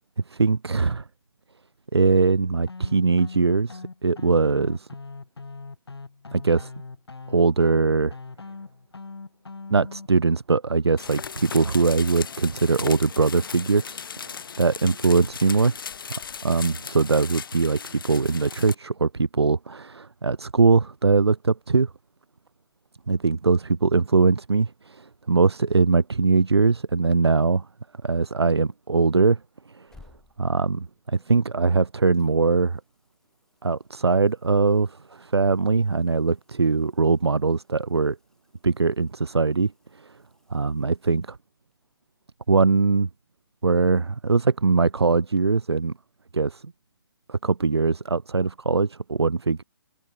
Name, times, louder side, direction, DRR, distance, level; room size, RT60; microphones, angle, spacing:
voice 1, 0.3-1.0 1.9-4.9 6.3-6.7 7.3-8.2 9.7-15.8 16.4-21.9 23.1-27.7 28.0-29.4 29.7-29.9 30.4-32.8 33.6-38.2 38.6-40.1 40.5-41.2 42.5-43.1 43.6-45.9 46.3-46.6 47.3-49.6, right 4 dB, 80° right, 0.7 m, -21 dB
sound 1, 2.7-10.1, left 4 dB, 75° left, 4.8 m, -41 dB
sound 2, 11.0-18.8, left 7 dB, 55° left, 1.5 m, -37 dB
sound 3, 29.6-31.8 32.1-41.7 44.5-44.6, left 3 dB, 5° left, 5.9 m, -61 dB
figure-of-eight pair, 135°, 13 cm